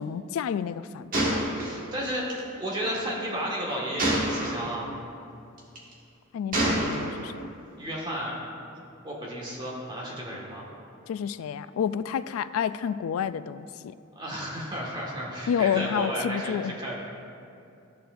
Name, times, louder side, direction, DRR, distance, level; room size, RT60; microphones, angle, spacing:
voice 1, 0.0-1.4 6.3-7.4 11.1-14.0 15.5-16.8, left 8 dB, 90° left, 16 dB, 0.3 m, -29 dB
Gunshot gunfire, 1.1-2.4 4.0-4.8 5.6-5.9 6.5-7.3, right 1 dB, 45° right, 1.6 m, -27 dB
voice 2, 1.5-2.3 2.6-4.9 7.8-8.4 9.0-10.7 14.2-17.0, equal, 20° right, -4 dB, 1.7 m, -33 dB
14.0 x 6.8 x 2.6 m, 2.6 s
head